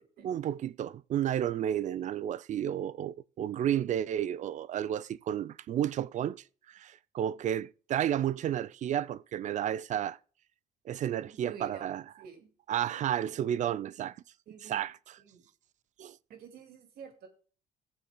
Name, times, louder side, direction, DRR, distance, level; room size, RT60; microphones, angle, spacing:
voice 1, 0.2-10.2 10.9-12.0 12.7-14.2 14.6-14.9 16.0-16.2, right 10 dB, 45° right, 0.4 m, -32 dB
voice 2, 11.2-12.5 14.5-14.8 15.2-15.4 16.3-17.3, right 6 dB, 65° right, 2.2 m, -48 dB
17.5 x 7.1 x 2.2 m
cardioid pair, 110°, 17 cm